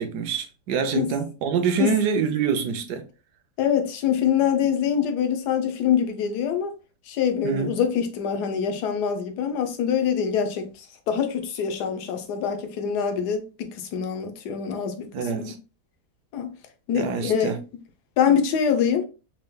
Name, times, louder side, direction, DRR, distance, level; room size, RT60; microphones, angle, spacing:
voice 1, 0.0-3.0 7.4-7.7 15.1-15.5 17.0-17.6, right 6 dB, 80° right, 1.3 m, -26 dB
voice 2, 3.6-6.7 7.1-10.7 11.1-15.5 16.3-16.5 16.9-17.5 18.2-19.1, left 8 dB, 80° left, 1.3 m, -24 dB
4.5 x 3.2 x 2.2 m
omnidirectional pair, 1.7 m